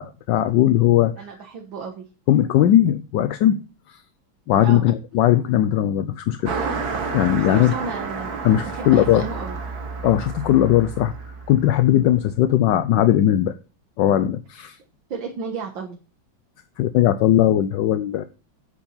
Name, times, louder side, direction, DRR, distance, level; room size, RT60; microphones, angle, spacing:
voice 1, 0.0-1.1 2.3-3.6 3.9-4.0 4.5-6.5 7.1-7.7 8.4-9.3 10.0-11.1 11.5-13.6 14.0-14.8 16.8-18.2, left 12 dB, 70° left, 1.3 m, -18 dB
voice 2, 1.2-2.0 4.6-4.9 7.3-8.3 8.7-9.6 15.1-16.0, right 5 dB, 75° right, 2.2 m, -33 dB
Car passing by, 6.4-12.3, right 4 dB, 50° right, 1.9 m, -31 dB
9.0 x 7.2 x 5.6 m
omnidirectional pair, 2.1 m